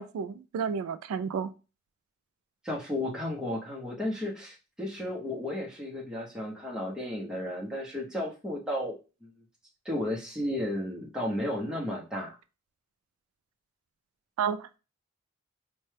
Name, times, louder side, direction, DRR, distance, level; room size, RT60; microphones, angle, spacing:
voice 1, 0.0-1.5 14.4-14.7, right 6 dB, 85° right, 14 dB, 0.3 m, -31 dB
voice 2, 2.6-9.3 9.8-12.4, left 1 dB, 5° right, -3 dB, 0.7 m, -33 dB
4.4 x 2.1 x 3.2 m, 0.32 s
head